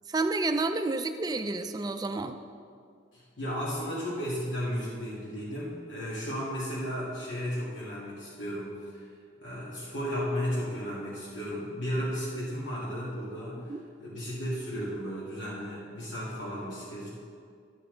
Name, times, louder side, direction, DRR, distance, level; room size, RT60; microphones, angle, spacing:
voice 1, 0.1-2.4 13.7-13.8, right 3 dB, 20° right, 7 dB, 0.4 m, -30 dB
voice 2, 3.1-9.1 9.4-17.1, equal, 80° left, -8 dB, 2.2 m, -34 dB
12.0 x 6.9 x 3.9 m, 2.3 s
head